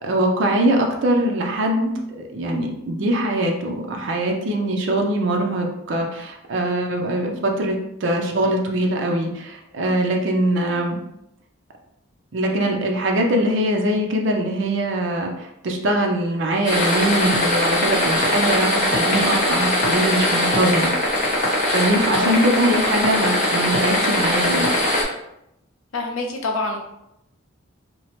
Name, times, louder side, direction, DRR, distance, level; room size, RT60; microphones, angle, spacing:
voice 1, 0.0-11.0 12.3-20.9 21.7-24.7, right 1 dB, 60° right, 1 dB, 0.5 m, -22 dB
sound 1, 16.6-25.0, left 1 dB, 40° left, 0.8 m, -21 dB
voice 2, 22.1-22.7 25.9-26.8, left 2 dB, 75° left, 2 dB, 0.5 m, -27 dB
2.9 x 2.0 x 2.9 m, 0.82 s
head